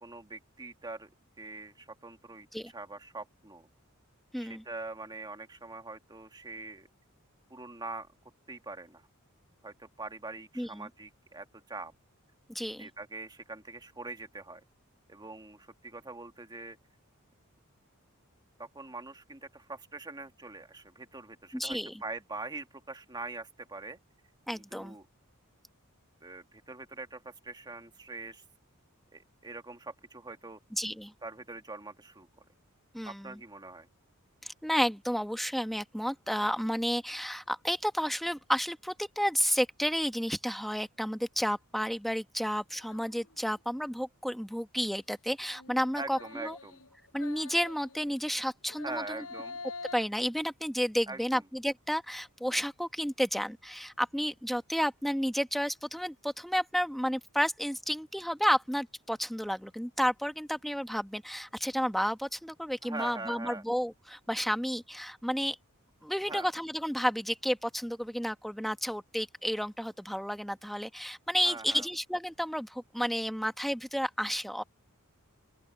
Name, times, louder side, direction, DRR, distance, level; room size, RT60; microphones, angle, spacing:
voice 1, 0.0-1.1 1.4-2.5 2.7-3.7 4.4-6.9 7.5-8.1 8.5-9.0 9.6-11.9 12.8-14.6 15.1-16.8 18.6-24.0 24.5-25.1 26.2-28.4 29.1-30.6 31.2-32.4 33.0-33.9 45.9-46.8 48.8-49.6 51.1-51.4 62.8-63.6 66.3-66.5 71.4-71.9, right 3 dB, 20° right, 1.9 m, -43 dB
voice 2, 4.3-4.6 10.6-10.9 12.5-12.9 21.5-22.0 24.5-24.9 30.7-31.1 32.9-33.4 34.4-46.6 47.1-49.2 49.9-65.6 66.0-74.6, equal, ahead, 1.2 m, -31 dB
sound 1, 42.7-43.6 45.4-48.3 48.7-50.1, left 4 dB, 75° left, 6.1 m, -46 dB
open air
head